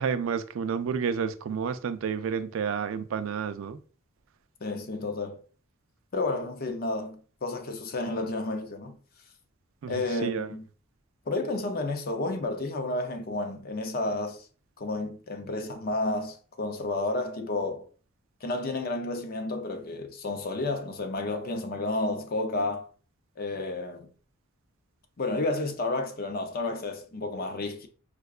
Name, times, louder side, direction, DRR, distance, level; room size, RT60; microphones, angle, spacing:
voice 1, 0.0-3.8 9.8-10.5, right 6 dB, 70° right, 0.3 m, -30 dB
voice 2, 4.6-5.4 6.1-9.0 9.9-10.7 11.3-14.5 14.8-17.9 18.4-22.9 23.4-24.1 25.2-27.9, left 2 dB, 45° left, 0.5 m, -31 dB
4.6 x 2.2 x 2.3 m
head